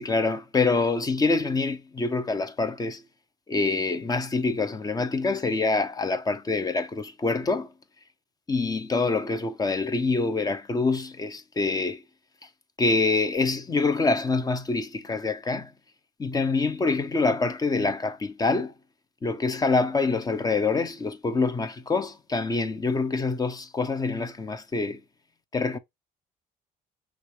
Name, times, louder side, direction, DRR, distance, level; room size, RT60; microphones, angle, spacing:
voice 1, 0.0-3.0 3.5-7.7 8.5-12.0 12.8-15.7 16.2-18.7 19.2-25.0 25.5-25.8, left 3 dB, 20° left, 0.8 m, -26 dB
6.1 x 2.6 x 3.2 m
cardioid pair, 110°, 17 cm